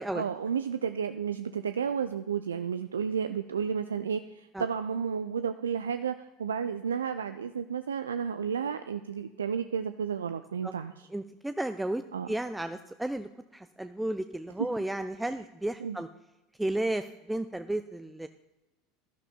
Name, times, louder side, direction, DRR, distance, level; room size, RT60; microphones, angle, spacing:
voice 1, 0.1-11.1 12.1-12.3 15.8-16.0, right 7 dB, 75° right, 10 dB, 0.3 m, -32 dB
voice 2, 11.1-12.0 12.3-16.1 16.6-18.3, right 1 dB, 5° right, 9 dB, 0.4 m, -33 dB
16.5 x 12.0 x 2.2 m, 1.0 s
figure-of-eight pair, 75°, 0 cm